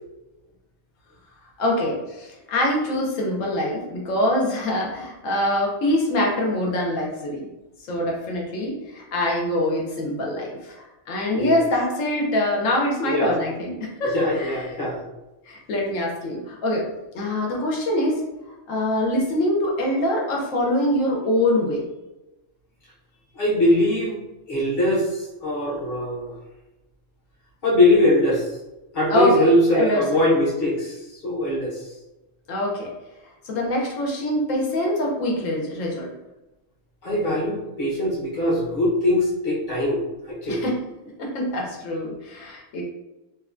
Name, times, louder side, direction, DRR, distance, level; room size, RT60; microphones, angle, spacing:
voice 1, 1.6-7.5 7.9-14.7 15.5-16.9 17.1-18.2 18.7-21.8 29.1-30.3 32.5-32.9 33.4-36.1 40.5-40.8 41.2-42.8, left 1 dB, 75° left, -1 dB, 1.0 m, -24 dB
voice 2, 14.1-15.0 23.3-24.2 24.5-26.3 27.6-28.5 28.9-31.9 37.0-40.6, left 1 dB, 45° left, -6 dB, 0.9 m, -21 dB
3.0 x 2.1 x 2.4 m, 1.0 s
omnidirectional pair, 1.4 m